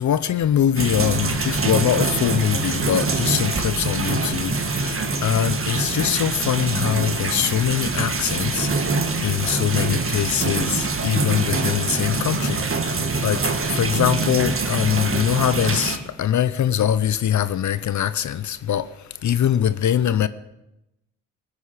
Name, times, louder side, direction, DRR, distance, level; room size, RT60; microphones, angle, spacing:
voice 1, 0.0-8.9 9.2-18.9 19.2-20.3, left 10 dB, 65° left, 0.7 m, -23 dB
sound 1, 0.8-16.0, right 3 dB, 40° right, 1.7 m, -24 dB
18.5 x 8.3 x 6.6 m
supercardioid pair, 45°, 32 cm